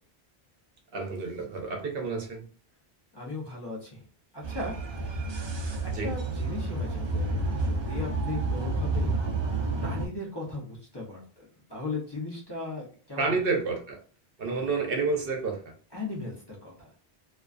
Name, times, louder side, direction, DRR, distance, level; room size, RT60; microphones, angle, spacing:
voice 1, 0.9-2.5 5.9-6.1 13.2-14.0 14.4-15.6, right 4 dB, 65° right, 0.8 m, -29 dB
voice 2, 3.1-4.0 4.3-4.8 5.8-9.1 9.8-13.4 14.4-14.7 15.9-17.0, left 2 dB, 25° left, 0.7 m, -37 dB
sound 1, 4.4-10.1, right 2 dB, 45° right, 0.3 m, -30 dB
2.4 x 2.3 x 2.3 m
omnidirectional pair, 1.1 m